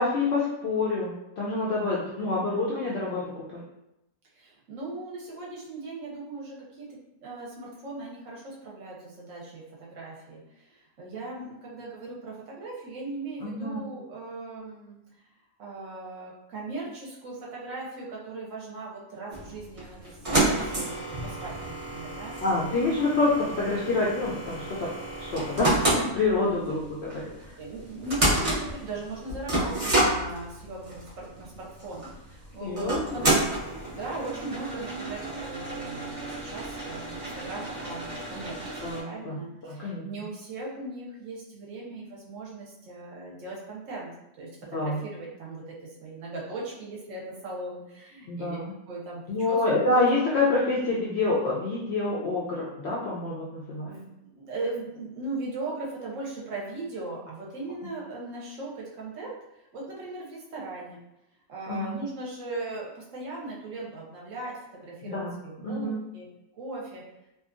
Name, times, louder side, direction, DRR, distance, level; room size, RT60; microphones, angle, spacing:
voice 1, 0.0-3.2 3.5-3.6 13.4-13.8 22.4-24.9 25.2-27.3 32.6-33.2 38.8-40.1 44.7-45.0 48.3-48.7 49.3-53.9 61.7-61.9 65.1-65.3 65.6-66.0, left 3 dB, 70° left, -6 dB, 0.6 m, -27 dB
voice 2, 4.3-15.0 15.6-22.3 27.6-33.5 33.9-38.8 39.0-44.1 44.4-48.6 48.9-49.6 53.9-61.0 61.5-66.3 66.6-67.0, right 2 dB, 65° right, -4 dB, 0.9 m, -38 dB
sound 1, 19.3-39.0, right 1 dB, 35° right, 0.6 m, -30 dB
2.6 x 2.3 x 2.4 m, 0.90 s
omnidirectional pair, 1.6 m